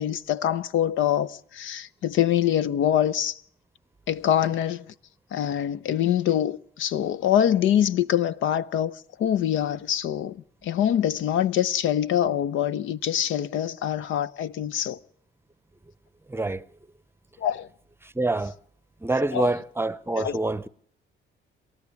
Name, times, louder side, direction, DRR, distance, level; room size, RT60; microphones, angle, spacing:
voice 1, 0.0-3.4 4.1-4.9 5.3-15.0 17.4-17.7 19.3-19.5 20.2-20.4, left 10 dB, 80° left, 0.8 m, -24 dB
voice 2, 16.3-16.6 18.0-18.5 19.0-20.7, right 2 dB, 10° right, 0.7 m, -26 dB
28.5 x 13.0 x 7.1 m
cardioid pair, 90°, 20 cm